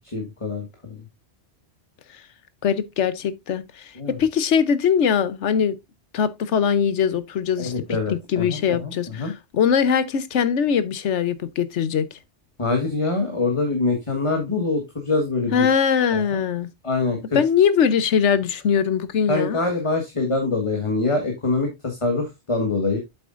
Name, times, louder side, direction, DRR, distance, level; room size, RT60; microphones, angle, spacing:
voice 1, 0.1-0.6 3.9-4.2 7.6-9.3 12.6-15.7 16.1-16.4 16.8-17.4 19.3-23.0, left 3 dB, 30° left, 1.6 m, -24 dB
voice 2, 2.6-3.9 4.2-5.8 6.1-12.1 15.5-16.7 17.3-19.6, left 7 dB, 90° left, 1.2 m, -21 dB
8.0 x 7.8 x 2.5 m
omnidirectional pair, 1.2 m